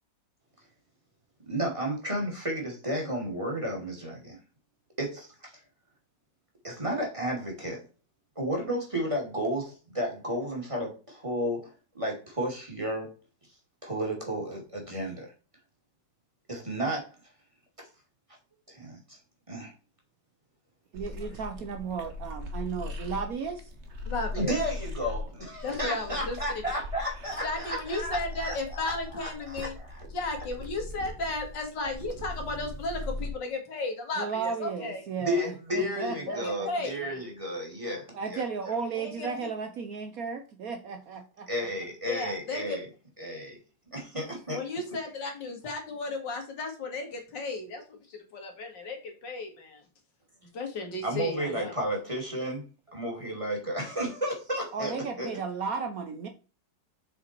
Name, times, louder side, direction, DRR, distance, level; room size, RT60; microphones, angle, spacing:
voice 1, 1.5-4.4 5.0-5.5 6.6-7.8 8.4-13.1 13.8-15.3 16.5-17.1 17.8-17.9 18.7-19.2 19.5-19.7 24.3-30.0 35.2-38.4 41.5-42.9 43.2-43.6 43.9-44.6 51.0-52.6 52.9-55.3, equal, 15° right, 2.7 m, -32 dB
sound 1, 20.9-33.3, left 2 dB, 40° right, 1.4 m, -40 dB
voice 2, 20.9-23.7 34.2-37.1 38.1-41.5 51.5-51.6 54.7-56.3, right 5 dB, 60° right, 1.1 m, -34 dB
voice 3, 24.1-24.5 25.6-26.4 27.4-29.7 30.1-35.0 36.3-37.0 38.9-39.3 42.0-42.8 44.5-49.8 50.5-51.7, left 2 dB, 75° left, 2.5 m, -34 dB
7.0 x 5.0 x 4.5 m
omnidirectional pair, 1.9 m